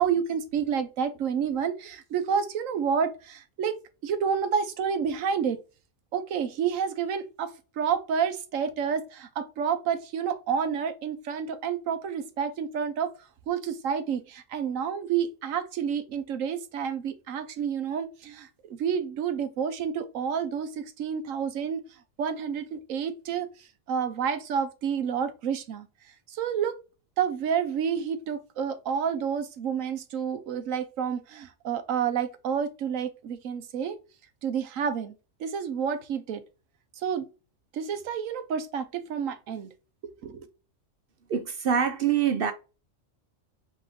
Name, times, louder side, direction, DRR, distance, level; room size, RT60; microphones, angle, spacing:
voice 1, 0.0-5.6 6.1-13.1 13.5-21.8 22.2-23.5 23.9-25.9 26.3-26.8 27.2-34.0 34.4-35.1 35.4-36.4 37.0-37.3 37.7-39.7 40.0-40.5, right 7 dB, 85° right, 1.2 m, -29 dB
voice 2, 41.3-42.5, right 8 dB, 55° right, 0.7 m, -25 dB
5.6 x 3.1 x 2.7 m
omnidirectional pair, 1.3 m